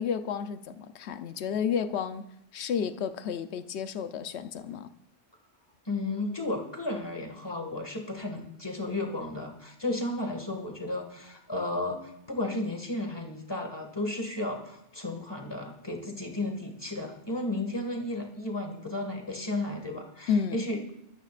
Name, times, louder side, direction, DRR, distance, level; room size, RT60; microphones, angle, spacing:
voice 1, 0.0-2.3 2.5-4.9 20.3-20.6, left 7 dB, 75° left, 1.0 m, -31 dB
voice 2, 5.9-20.8, left 2 dB, 20° left, 2.0 m, -33 dB
21.0 x 13.5 x 2.5 m
omnidirectional pair, 1.1 m